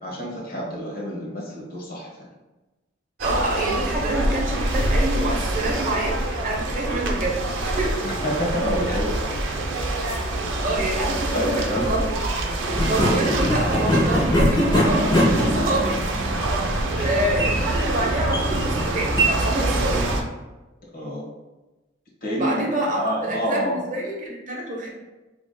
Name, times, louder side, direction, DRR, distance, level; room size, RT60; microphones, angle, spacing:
voice 1, 0.0-2.3 8.0-9.6 10.3-10.7 11.0-12.0 15.0-15.7 16.9-17.2 20.9-21.2 22.2-22.7 22.9-23.8, equal, 50° left, -4 dB, 1.3 m, -29 dB
voice 2, 3.2-8.1 10.6-12.0 12.8-16.0 17.0-20.2 22.4-24.9, right 1 dB, 40° right, -2 dB, 0.9 m, -26 dB
sound 1, 3.2-20.2, right 1 dB, 75° right, 0.7 m, -25 dB
sound 2, 11.6-11.9 12.7-20.2, equal, 25° left, 1.1 m, -24 dB
5.0 x 3.5 x 2.2 m, 1.1 s
head